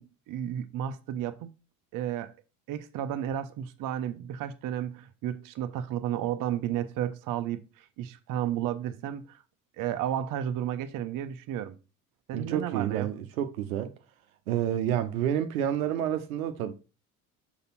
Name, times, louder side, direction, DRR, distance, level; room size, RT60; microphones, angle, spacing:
voice 1, 0.0-1.5 1.9-2.3 2.7-9.4 9.8-11.8 12.3-13.1, right 10 dB, 45° right, 0.9 m, -33 dB
voice 2, 12.3-13.9 14.5-16.7, right 10 dB, 70° right, 0.9 m, -29 dB
6.8 x 5.0 x 4.2 m
figure-of-eight pair, 60°, 44 cm